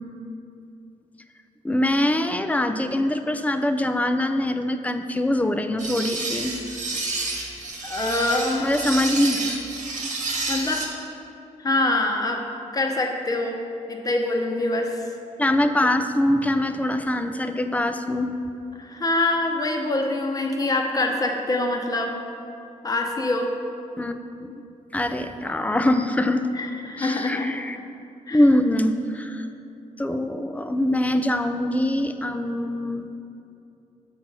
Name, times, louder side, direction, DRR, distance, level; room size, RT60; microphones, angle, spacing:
voice 1, 1.6-6.6 8.6-9.6 15.4-18.3 24.0-24.6 24.9-26.4 27.0-27.8 28.3-29.5 30.0-33.1, left 1 dB, 10° left, 8 dB, 0.4 m, -23 dB
sound 1, 5.8-10.9, right 3 dB, 70° right, 1.2 m, -30 dB
voice 2, 7.8-8.8 10.5-10.8 11.6-12.4 12.7-13.6 13.9-15.0 18.7-22.1 22.8-23.5 26.5-27.6 28.3-28.4, left 2 dB, 25° left, 2 dB, 0.9 m, -25 dB
7.5 x 4.0 x 5.9 m, 2.7 s
cardioid pair, 95°, 13 cm